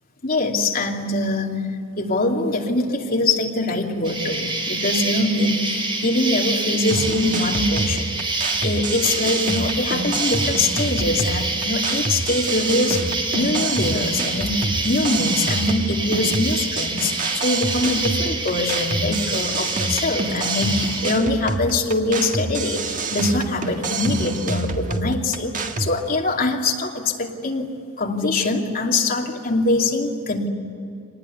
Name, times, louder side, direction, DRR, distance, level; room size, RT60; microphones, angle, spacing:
voice 1, 0.2-1.6 2.0-8.1 8.6-13.0 13.3-27.7 28.0-30.5, left 2 dB, 45° left, 0 dB, 2.7 m, -23 dB
Insect, 4.0-21.1, right 2 dB, 25° right, 3.6 m, -27 dB
sound 1, 6.9-25.9, right 3 dB, 40° right, 1.5 m, -27 dB
25.5 x 19.5 x 9.6 m, 2.6 s
head